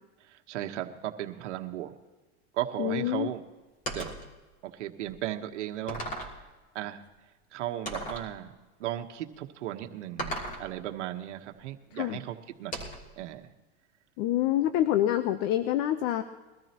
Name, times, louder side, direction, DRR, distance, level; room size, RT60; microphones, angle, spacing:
voice 1, 0.3-1.9 2.5-3.4 3.9-4.1 4.6-6.1 6.7-7.0 7.5-8.5 8.8-12.8 13.2-13.5, right 13 dB, 85° right, 5 dB, 1.3 m, -36 dB
voice 2, 2.8-3.3 11.9-12.2 14.2-16.2, left 12 dB, 55° left, 10 dB, 0.9 m, -26 dB
sound 1, 3.9-4.3 5.1-5.2 5.9-6.4 7.9-8.3 10.2-10.7 12.7-13.1, right 1 dB, 25° left, 3.1 m, -36 dB
22.0 x 13.5 x 3.0 m, 1.2 s
supercardioid pair, 130°, 35 cm